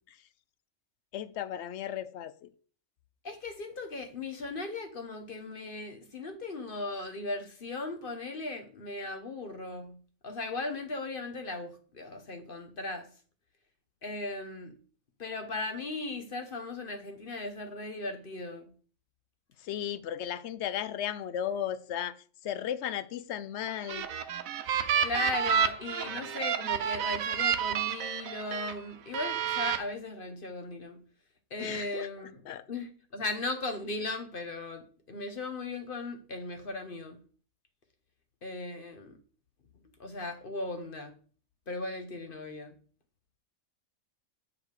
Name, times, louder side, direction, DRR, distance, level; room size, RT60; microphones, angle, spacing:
voice 1, 1.1-2.5 19.6-24.1 31.6-32.1 32.5-32.6, left 10 dB, 65° left, 0.8 m, -35 dB
voice 2, 3.2-10.0 10.2-13.1 14.0-14.7 15.2-18.6 25.0-31.0 31.5-32.4 32.7-37.2 38.4-39.2 40.0-41.1 41.7-42.7, left 2 dB, 45° left, 1.0 m, -37 dB
sound 1, 23.7-28.7 29.1-29.8, right 8 dB, 85° right, 1.2 m, -30 dB
8.7 x 4.8 x 4.8 m
omnidirectional pair, 1.4 m